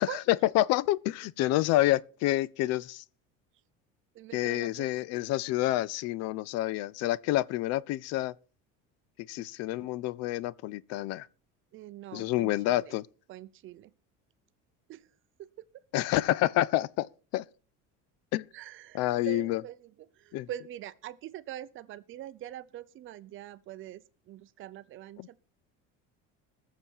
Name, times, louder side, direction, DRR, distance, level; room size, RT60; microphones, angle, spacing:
voice 1, 0.5-3.0 4.3-8.3 9.3-11.3 12.1-13.0 15.9-17.1 17.3-17.4 18.3-18.4 18.9-19.6 20.3-20.5, left 15 dB, 55° left, 0.5 m, -28 dB
voice 2, 4.1-4.9 9.4-9.9 11.7-13.0 13.3-13.9 14.9-15.7 18.5-25.4, right 12 dB, 40° right, 0.6 m, -44 dB
21.0 x 7.0 x 4.6 m
cardioid pair, 155°, 31 cm